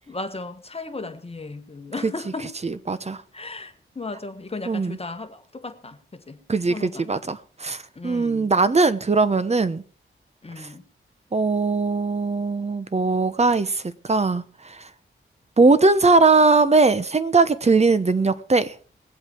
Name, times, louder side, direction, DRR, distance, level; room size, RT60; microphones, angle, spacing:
voice 1, 0.1-2.5 3.3-6.4 6.7-7.0 7.9-8.5 10.4-10.8, left 3 dB, 30° left, 1.6 m, -35 dB
voice 2, 2.6-3.2 4.7-5.0 6.5-9.8 10.6-10.7 11.3-14.9 15.6-18.8, right 3 dB, 30° right, 1.0 m, -20 dB
20.5 x 8.1 x 4.6 m
wide cardioid pair, 90°, 21 cm